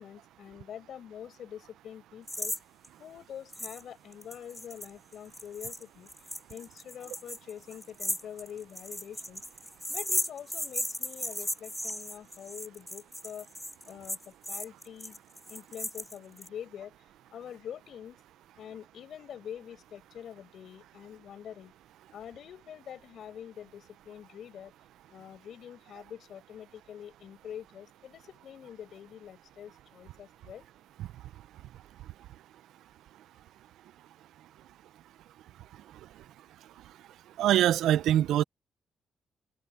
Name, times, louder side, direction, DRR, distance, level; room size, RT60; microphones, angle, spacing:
voice 1, 0.0-2.5 3.0-6.1 6.5-9.4 9.9-13.5 13.9-15.2 15.5-16.9 17.3-18.2 18.6-21.7 22.1-24.7 25.1-30.7, left 9 dB, 65° left, 6.1 m, -45 dB
sound 1, 2.3-2.6 2.8-2.9 3.5-3.8 4.1-16.5, equal, ahead, 2.3 m, -36 dB
voice 2, 37.4-38.4, right 12 dB, 90° right, 0.5 m, -23 dB
cardioid pair, 115°, 0 cm